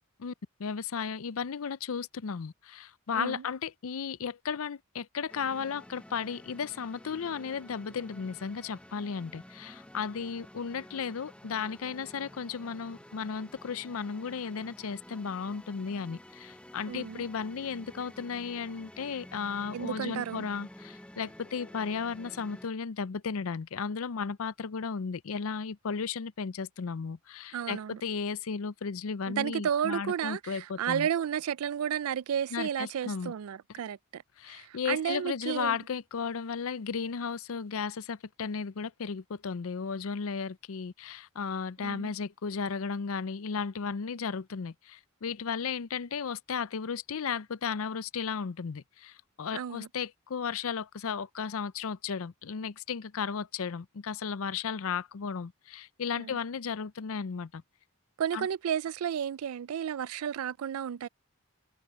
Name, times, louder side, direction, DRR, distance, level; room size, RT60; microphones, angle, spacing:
voice 1, 0.6-31.1 32.5-33.3 34.4-57.6 58.3-58.5, left 6 dB, 70° left, 0.5 m, -35 dB
sound 1, 5.3-22.7, left 1 dB, 5° left, 0.8 m, -51 dB
voice 2, 16.9-17.2 19.7-20.5 27.5-28.0 29.3-34.2 34.5-35.8 41.8-42.1 49.5-49.9 56.2-56.4 58.2-61.1, right 8 dB, 80° right, 0.4 m, -32 dB
head